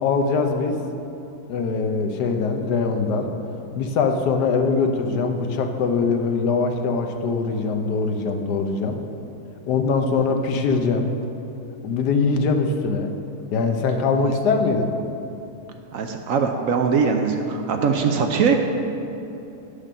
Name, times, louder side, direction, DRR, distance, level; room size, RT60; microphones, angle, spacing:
voice 1, 0.0-0.8 1.5-3.3 3.8-9.0 9.7-11.1 11.8-13.1 13.5-14.9, left 4 dB, 85° left, 5 dB, 1.3 m, -22 dB
voice 2, 15.9-18.5, right 5 dB, 65° right, 4 dB, 0.9 m, -21 dB
8.9 x 5.0 x 6.7 m, 2.9 s
omnidirectional pair, 1.7 m